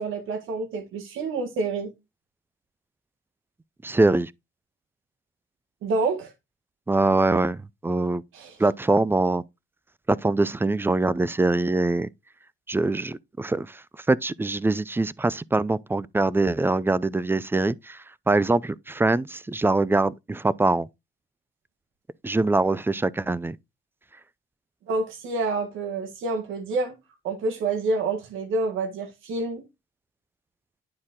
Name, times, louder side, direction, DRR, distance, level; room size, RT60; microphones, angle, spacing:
voice 1, 0.0-1.9 5.8-6.3 8.3-8.6 24.9-27.0 27.2-29.6, right 3 dB, 85° right, 1.7 m, -28 dB
voice 2, 3.8-4.3 6.9-8.2 8.6-9.4 10.1-12.1 12.7-20.9 22.2-23.6, right 2 dB, 10° right, 0.4 m, -23 dB
9.7 x 4.3 x 3.6 m
cardioid pair, 90°, 20 cm